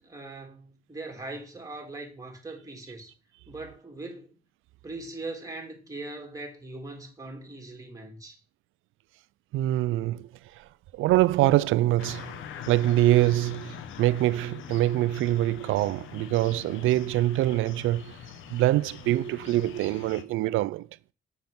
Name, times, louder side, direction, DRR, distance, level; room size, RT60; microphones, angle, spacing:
voice 1, 0.0-3.1 3.5-4.4 4.8-8.4, right 2 dB, 15° right, 3.4 m, -40 dB
voice 2, 9.5-10.3 10.9-12.4 12.7-18.1 18.5-20.9, right 15 dB, 85° right, 0.5 m, -24 dB
sound 1, 12.0-20.2, left 8 dB, 85° left, 1.0 m, -43 dB
7.1 x 6.7 x 6.0 m
cardioid pair, 90°, 20 cm